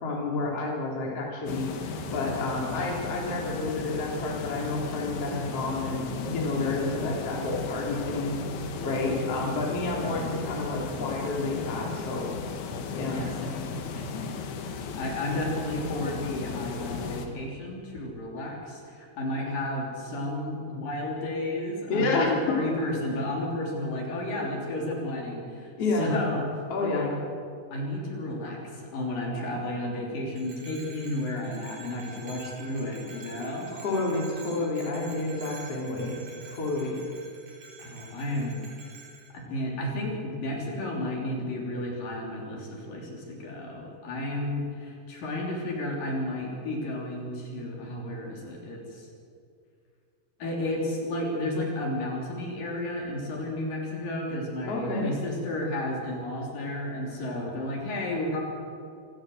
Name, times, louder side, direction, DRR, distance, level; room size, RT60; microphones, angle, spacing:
voice 1, 0.0-8.4 8.8-12.3 12.9-13.3 21.9-22.3 25.8-26.1 26.7-27.1 33.7-36.1 36.4-37.0 54.7-55.1, left 2 dB, 40° left, -2 dB, 4.1 m, -29 dB
sound 1, 1.5-17.3, left 5 dB, 90° left, 3.7 m, -36 dB
voice 2, 10.0-10.4 13.1-14.1 14.4-14.5 15.0-25.7 26.0-26.4 26.8-27.1 27.7-33.7 37.8-38.6 39.3-49.1 50.4-58.4, left 1 dB, 65° left, -1 dB, 4.9 m, -32 dB
Bell, 30.3-39.3, right 4 dB, 55° right, 6.0 m, -48 dB
27.0 x 15.5 x 7.8 m, 2.4 s
omnidirectional pair, 4.3 m